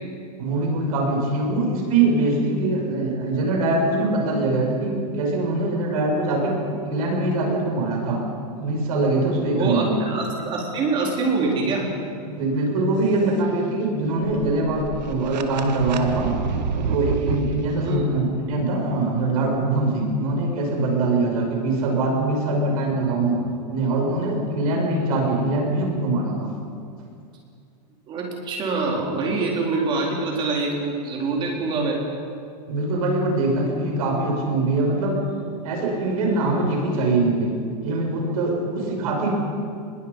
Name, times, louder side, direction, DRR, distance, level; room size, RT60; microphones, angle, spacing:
voice 1, 0.4-8.2 8.6-10.0 12.3-16.4 16.8-23.4 23.7-26.5 32.7-35.2 35.6-39.3, right 2 dB, 60° right, 0 dB, 6.4 m, -23 dB
voice 2, 9.5-11.9 17.8-18.2 28.1-32.0, right 3 dB, 25° right, -1 dB, 4.1 m, -25 dB
sound 1, 14.0-17.6, right 6 dB, 85° right, 1.6 m, -28 dB
25.0 x 21.5 x 5.5 m, 2.3 s
supercardioid pair, 165°, 21 cm